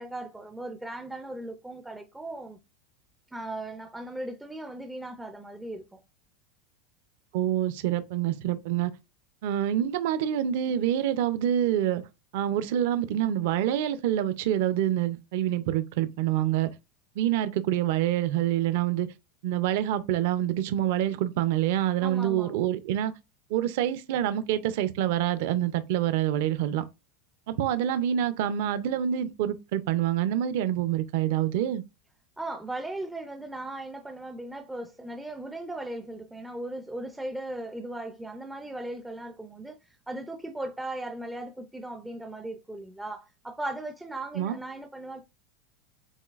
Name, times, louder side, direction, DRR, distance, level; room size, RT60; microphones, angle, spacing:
voice 1, 0.0-2.6 3.3-6.0 22.0-22.6 32.4-39.8 40.1-45.2, right 1 dB, 5° right, 0.4 m, -37 dB
voice 2, 7.3-8.9 9.4-12.0 12.3-16.7 17.2-19.1 19.4-23.1 23.5-26.8 27.5-31.8 44.3-44.6, right 11 dB, 55° right, 0.5 m, -26 dB
7.0 x 2.5 x 2.4 m
supercardioid pair, 175°, 0 cm